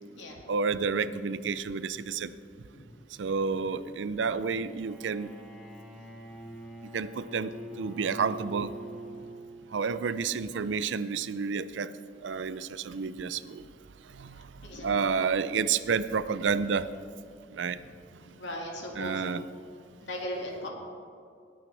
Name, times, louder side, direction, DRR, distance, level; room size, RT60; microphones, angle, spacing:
voice 1, 0.5-2.3 3.2-5.3 6.9-8.7 9.7-11.9 12.2-13.6 14.1-14.4 14.8-16.9 17.5-17.8 19.0-19.4, right 5 dB, 85° right, 15 dB, 0.5 m, -30 dB
Bowed string instrument, 4.6-9.9, right 1 dB, ahead, 1.0 m, -44 dB
voice 2, 14.6-15.0 18.3-19.2 20.0-20.7, left 1 dB, 90° left, -1 dB, 2.1 m, -37 dB
19.5 x 8.8 x 3.4 m, 2.3 s
head